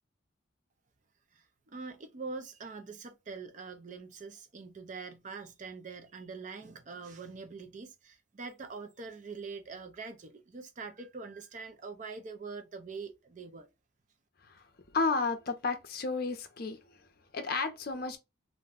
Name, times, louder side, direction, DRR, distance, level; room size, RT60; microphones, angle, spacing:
voice 1, 1.3-13.7, right 4 dB, 40° right, 0.4 m, -44 dB
voice 2, 14.9-16.8 17.3-18.2, left 4 dB, 50° left, 0.5 m, -32 dB
2.5 x 2.1 x 3.4 m
head